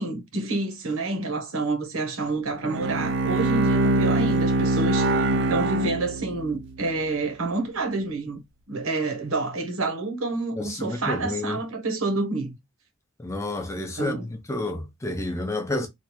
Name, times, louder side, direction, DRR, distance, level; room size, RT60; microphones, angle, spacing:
voice 1, 0.0-8.4 8.7-12.6 14.0-14.3, right 3 dB, 75° right, 1.0 m, -28 dB
Bowed string instrument, 2.6-6.7, right 2 dB, 55° right, 0.5 m, -23 dB
voice 2, 10.6-11.6 13.2-14.2 14.5-15.9, left 2 dB, 15° left, 0.5 m, -30 dB
3.2 x 2.4 x 3.0 m
head